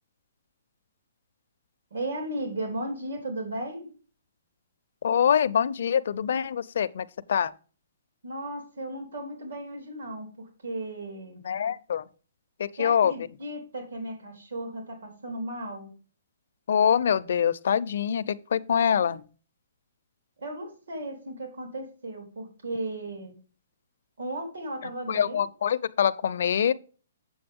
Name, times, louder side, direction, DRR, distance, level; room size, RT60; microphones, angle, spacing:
voice 1, 1.9-3.9 8.2-11.4 12.8-15.9 20.4-23.3 24.2-25.4, right 1 dB, 85° right, 3.9 m, -35 dB
voice 2, 5.0-7.5 11.4-12.1 12.6-13.1 16.7-19.2 25.1-26.7, left 8 dB, 55° left, 0.5 m, -24 dB
7.8 x 7.4 x 3.6 m
hypercardioid pair, 175°, 0 cm